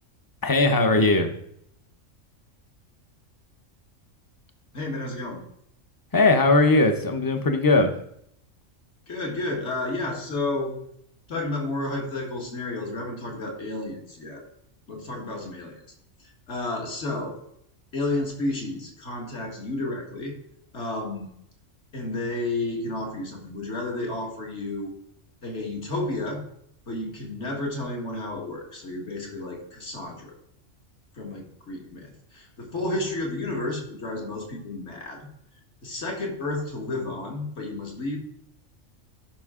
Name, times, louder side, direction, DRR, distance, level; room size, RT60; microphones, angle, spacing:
voice 1, 0.4-1.3 6.1-7.9, left 2 dB, 25° left, 6 dB, 0.5 m, -19 dB
voice 2, 4.7-5.4 9.1-10.7 11.3-14.4 14.9-15.8 16.2-17.4 17.9-20.4 20.7-21.3 21.9-24.9 25.4-26.4 26.9-30.3 31.1-35.3 35.8-38.2, left 2 dB, 60° left, 0 dB, 2.0 m, -31 dB
11.5 x 5.5 x 3.7 m, 0.72 s
omnidirectional pair, 1.4 m